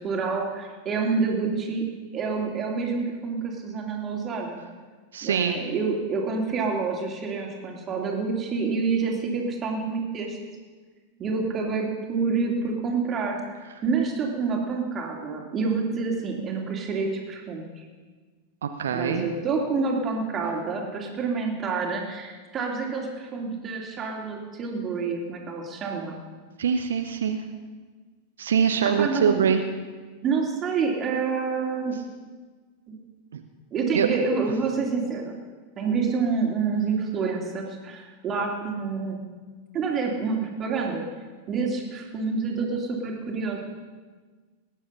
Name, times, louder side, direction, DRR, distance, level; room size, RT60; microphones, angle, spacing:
voice 1, 0.0-1.8 2.1-4.6 5.2-10.4 11.2-13.4 13.8-17.8 18.9-26.2 29.0-29.5 30.2-32.0 32.9-33.0 33.7-35.4 35.8-39.2 39.7-41.1 41.5-43.6, right 4 dB, 25° right, 0 dB, 2.7 m, -28 dB
voice 2, 5.1-5.6 18.6-19.3 26.6-27.4 28.4-29.6 33.3-33.4 33.9-34.1, right 7 dB, 65° right, 6 dB, 0.9 m, -23 dB
20.0 x 9.9 x 5.7 m, 1.4 s
figure-of-eight pair, 90°, 0 cm